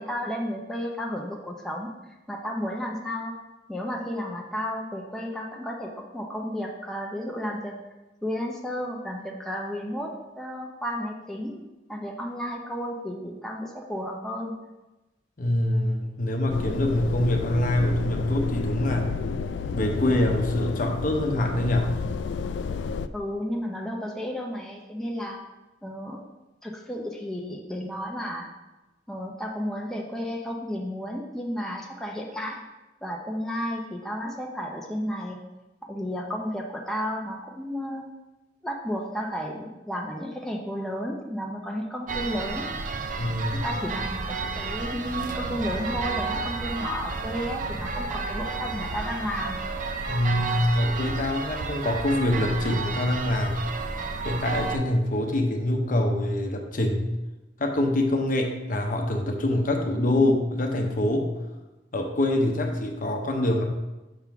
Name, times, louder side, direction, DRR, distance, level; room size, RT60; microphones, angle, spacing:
voice 1, 0.0-1.9 2.3-3.4 3.7-7.7 8.2-11.6 11.9-14.5 23.1-25.4 25.8-26.2 26.6-28.5 29.1-32.6 33.0-35.4 35.9-38.0 38.6-42.7 43.5-49.6, equal, 5° left, -1 dB, 0.6 m, -32 dB
voice 2, 15.4-19.2 19.7-21.9 43.2-43.6 50.1-53.6 54.2-57.0 57.6-61.3 61.9-63.6, left 1 dB, 50° left, 3 dB, 0.8 m, -25 dB
sound 1, 16.5-23.1, left 5 dB, 80° left, 0.3 m, -31 dB
sound 2, 42.1-54.8, right 3 dB, 45° right, 0.5 m, -31 dB
5.9 x 3.7 x 5.7 m, 1.1 s
head